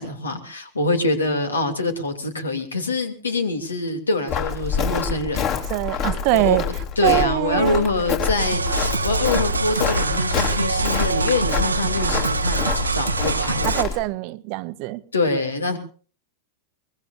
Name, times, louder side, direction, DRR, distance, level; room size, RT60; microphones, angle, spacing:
voice 1, 0.0-5.5 6.3-6.6 7.0-13.7 15.1-15.8, left 2 dB, 75° left, 7 dB, 2.7 m, -25 dB
Walk footsteps, 4.3-14.0, left 7 dB, 40° left, 3.6 m, -27 dB
voice 2, 5.7-6.7 7.0-7.9 13.6-15.0, right 21 dB, 45° right, 15 dB, 0.9 m, -23 dB
sound 1, 8.4-13.8, right 3 dB, 80° right, 1.0 m, -24 dB
23.5 x 21.0 x 2.6 m, 0.40 s
figure-of-eight pair, 90°, 0 cm